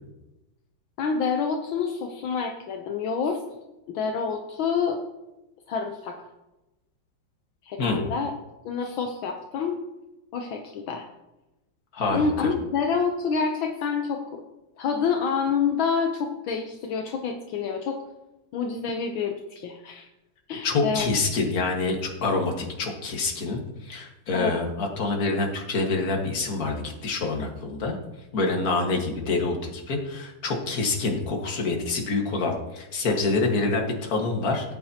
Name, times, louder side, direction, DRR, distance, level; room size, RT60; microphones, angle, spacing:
voice 1, 1.0-3.4 3.9-5.0 5.7-6.2 7.6-8.3 8.6-9.8 10.3-11.1 12.1-14.4 14.8-18.0 18.5-20.1 20.5-21.1 24.3-24.5, left 5 dB, 75° left, 4 dB, 1.5 m, -27 dB
voice 2, 11.9-12.5 20.6-28.0 28.3-34.8, left 3 dB, 45° left, 1 dB, 2.0 m, -26 dB
18.0 x 8.7 x 2.9 m, 1.0 s
omnidirectional pair, 2.2 m